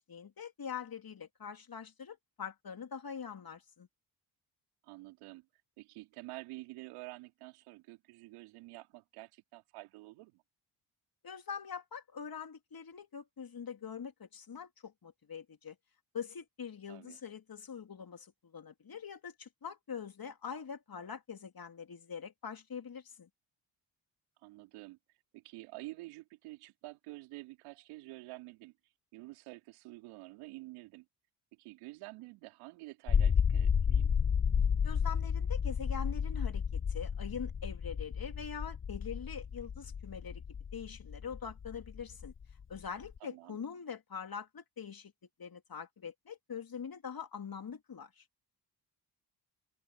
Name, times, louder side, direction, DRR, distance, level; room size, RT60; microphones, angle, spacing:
voice 1, 0.0-3.9 11.2-15.7 16.1-23.3 34.8-40.4 40.7-42.3 42.7-45.1 45.4-48.2, left 7 dB, 45° left, 3.3 m, -44 dB
voice 2, 4.8-5.5 5.8-10.4 16.9-17.2 24.4-25.0 25.3-28.7 29.1-31.1 31.5-34.1 43.2-43.6, right 20 dB, 80° right, 3.4 m, -49 dB
sound 1, 33.1-43.2, left 7 dB, 25° left, 0.7 m, -31 dB
hypercardioid pair, 45°, 50 cm